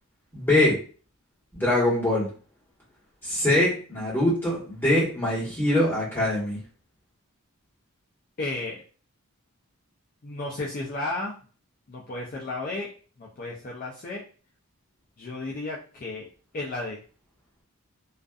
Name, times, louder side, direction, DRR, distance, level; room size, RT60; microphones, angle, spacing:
voice 1, 0.3-0.8 1.5-2.3 3.2-6.6, left 1 dB, 10° left, -7 dB, 1.2 m, -23 dB
voice 2, 8.4-8.8 10.2-11.4 11.9-12.9 13.2-14.2 15.2-16.3 16.5-17.0, left 2 dB, 40° left, -4 dB, 0.4 m, -33 dB
2.5 x 2.3 x 2.3 m, 0.40 s
head